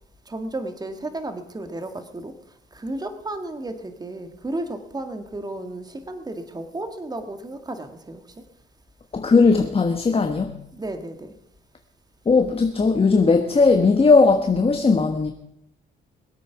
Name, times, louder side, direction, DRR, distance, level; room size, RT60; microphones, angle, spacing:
voice 1, 0.3-2.3 2.7-8.2 10.7-11.3, right 2 dB, 20° right, 1.9 m, -33 dB
voice 2, 9.1-10.5 12.3-15.3, left 4 dB, 30° left, 1.2 m, -18 dB
21.5 x 8.4 x 5.9 m
cardioid pair, 90°, 20 cm